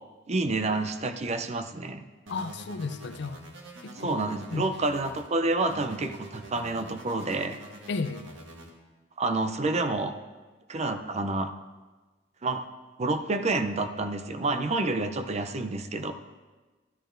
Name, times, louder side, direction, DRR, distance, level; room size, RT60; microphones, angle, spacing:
voice 1, 0.3-2.0 4.0-7.6 9.2-10.1 10.7-11.5 12.4-12.6 13.0-16.1, right 2 dB, 35° right, 9 dB, 0.5 m, -28 dB
voice 2, 2.3-3.4 3.8-4.2 4.5-4.7 7.9-8.3, left 4 dB, 65° left, 10 dB, 0.5 m, -33 dB
sound 1, 2.3-5.3 5.7-8.7, right 1 dB, 85° right, 1.4 m, -46 dB
13.5 x 11.0 x 2.6 m, 1.3 s
head